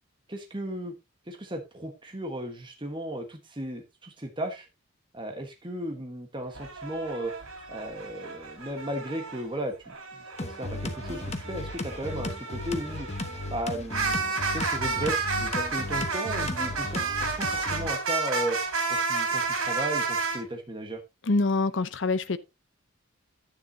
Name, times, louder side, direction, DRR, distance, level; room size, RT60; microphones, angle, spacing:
voice 1, 0.3-0.9 1.3-4.7 5.1-7.3 7.7-13.1 13.5-18.6 18.9-21.0, right 1 dB, 20° right, 1.3 m, -35 dB
sound 1, 6.5-9.4 9.9-20.4, right 4 dB, 80° right, 3.8 m, -31 dB
sound 2, 10.4-17.9, left 2 dB, 30° left, 1.1 m, -35 dB
voice 2, 21.3-22.4, left 3 dB, 55° left, 0.7 m, -25 dB
10.5 x 9.4 x 2.7 m
head